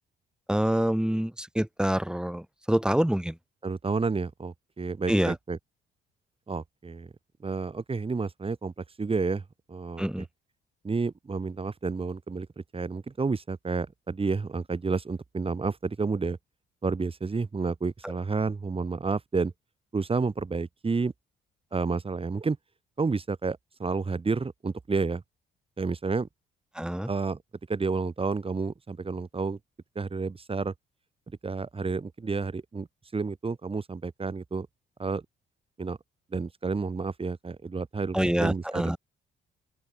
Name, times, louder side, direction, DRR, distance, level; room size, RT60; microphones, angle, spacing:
voice 1, 0.5-3.4 5.1-5.4 10.0-10.3 18.0-18.1 26.7-27.1 38.1-39.0, equal, 5° right, 4.1 m, -26 dB
voice 2, 3.6-5.6 6.5-7.1 7.4-8.7 9.0-10.3 10.8-12.5 12.7-16.4 16.8-19.5 19.9-21.1 21.7-22.6 23.0-25.2 25.8-26.3 27.1-27.4 27.7-29.6 30.0-30.7 31.4-32.9 33.1-34.7 35.0-35.2 35.8-36.0 36.3-39.0, right 4 dB, 30° right, 3.7 m, -30 dB
open air
cardioid pair, 90°, 20 cm